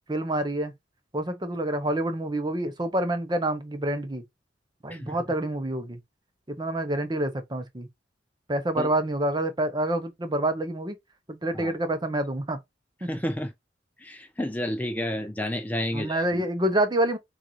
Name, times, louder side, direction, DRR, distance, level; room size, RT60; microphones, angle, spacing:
voice 1, 0.1-0.7 1.1-4.2 4.8-6.0 6.5-7.9 8.5-10.9 11.3-12.6 15.9-17.2, right 1 dB, 25° right, 0.7 m, -27 dB
voice 2, 13.0-13.5 14.0-16.4, left 1 dB, 10° left, 0.4 m, -31 dB
6.4 x 2.4 x 3.1 m
head